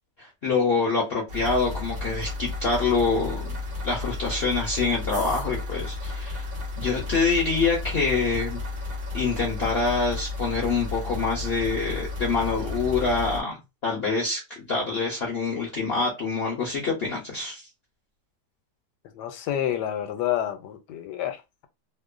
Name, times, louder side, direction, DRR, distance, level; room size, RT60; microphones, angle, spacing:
voice 1, 0.2-3.6 3.8-6.4 6.8-8.6 9.1-13.6 13.8-17.6, left 4 dB, 60° left, 0.6 m, -26 dB
sound 1, 1.3-13.4, left 3 dB, 45° right, 0.8 m, -33 dB
voice 2, 19.1-21.7, left 11 dB, 80° left, 1.2 m, -29 dB
2.9 x 2.1 x 2.4 m
omnidirectional pair, 1.8 m